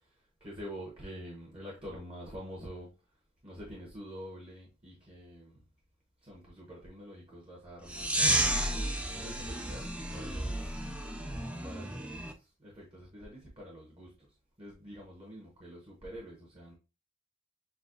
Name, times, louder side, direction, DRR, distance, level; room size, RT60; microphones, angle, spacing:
voice 1, 0.0-2.9 3.4-5.6 6.2-8.6 9.2-10.6 11.6-14.3 14.6-16.7, equal, 25° right, 1.1 m, -47 dB
sound 1, 7.9-12.3, right 1 dB, 5° right, 0.4 m, -32 dB
6.9 x 2.3 x 2.6 m
head